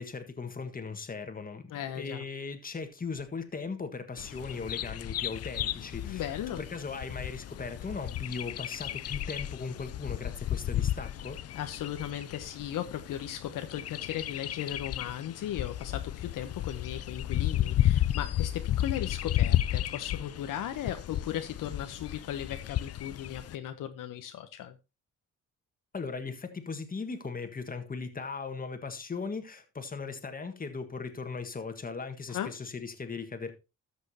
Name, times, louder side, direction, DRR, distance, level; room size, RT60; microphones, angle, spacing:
voice 1, 0.0-11.4 25.9-33.5, left 4 dB, 25° left, 1.6 m, -38 dB
voice 2, 1.7-2.2 6.0-6.6 11.5-24.8 32.3-32.5, left 11 dB, 75° left, 0.9 m, -37 dB
Bird vocalization bird call bird song, 4.2-23.6, left 12 dB, 50° left, 0.5 m, -33 dB
13.5 x 6.2 x 2.8 m
cardioid pair, 80°, 33 cm